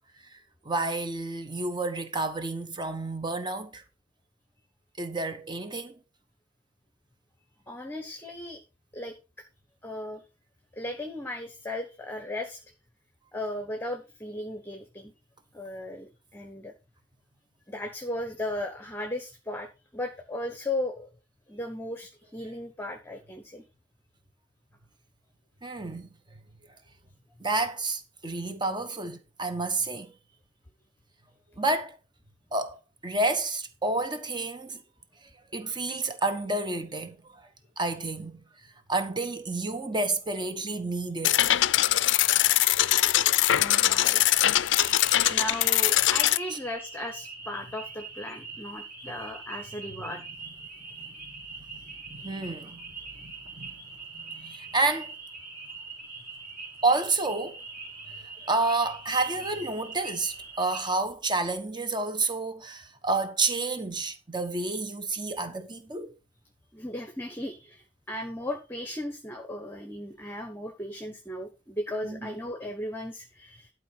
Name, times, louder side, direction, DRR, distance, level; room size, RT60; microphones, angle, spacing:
voice 1, 0.6-3.8 5.0-5.9 25.6-26.1 27.4-30.1 31.6-32.0 32.5-34.8 35.5-37.5 37.8-38.4 38.9-41.5 50.1-50.2 51.0-51.4 51.7-52.9 53.2-53.7 54.1-55.1 56.8-57.6 58.1-66.1 72.0-72.3, right 2 dB, 25° right, 1.3 m, -30 dB
voice 2, 7.7-8.6 8.9-9.4 9.8-10.2 10.7-12.6 13.3-15.1 15.5-16.7 17.7-21.1 21.5-23.6 43.5-44.2 45.3-50.2 53.0-53.1 54.3-54.6 57.9-58.1 66.7-73.7, left 1 dB, 10° left, 1.2 m, -36 dB
sound 1, 41.2-46.4, left 14 dB, 65° left, 0.4 m, -22 dB
sound 2, 44.7-60.9, right 4 dB, 50° right, 3.6 m, -43 dB
12.0 x 4.7 x 5.8 m
head